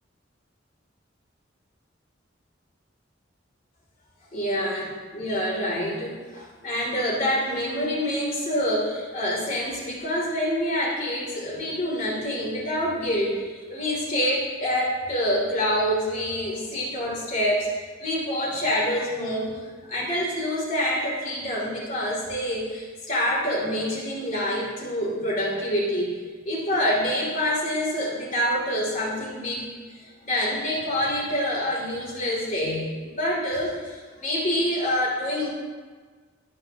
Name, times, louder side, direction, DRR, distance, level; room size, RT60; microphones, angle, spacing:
voice 1, 4.3-17.7 18.0-19.6 19.9-26.1 26.4-29.7 30.2-35.5, equal, 45° left, -4 dB, 2.8 m, -26 dB
17.0 x 6.3 x 2.9 m, 1.5 s
head